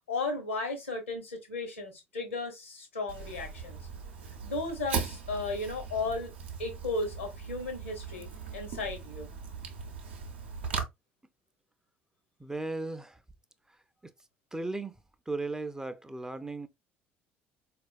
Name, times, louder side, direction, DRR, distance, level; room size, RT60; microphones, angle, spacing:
voice 1, 0.1-3.8 4.4-6.3 6.6-9.3, left 3 dB, 85° left, 1.0 m, -35 dB
Fire, 3.1-10.8, right 6 dB, 80° right, 0.6 m, -39 dB
voice 2, 12.4-13.2 14.0-14.1 14.5-15.0 15.3-16.7, right 2 dB, 10° right, 0.4 m, -36 dB
4.1 x 2.4 x 2.3 m
figure-of-eight pair, 55°, 6 cm